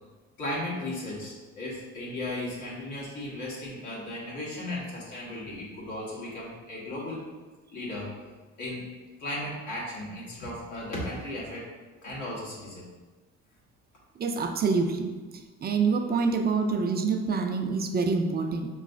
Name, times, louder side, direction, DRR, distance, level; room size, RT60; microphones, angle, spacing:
voice 1, 0.4-7.3 7.7-8.1 8.6-8.9 9.2-11.7 12.0-12.9, left 1 dB, 85° left, -6 dB, 1.4 m, -36 dB
voice 2, 14.2-15.1 15.6-18.7, right 4 dB, 35° right, 5 dB, 0.4 m, -26 dB
4.7 x 3.1 x 2.6 m, 1.3 s
cardioid pair, 90°, 30 cm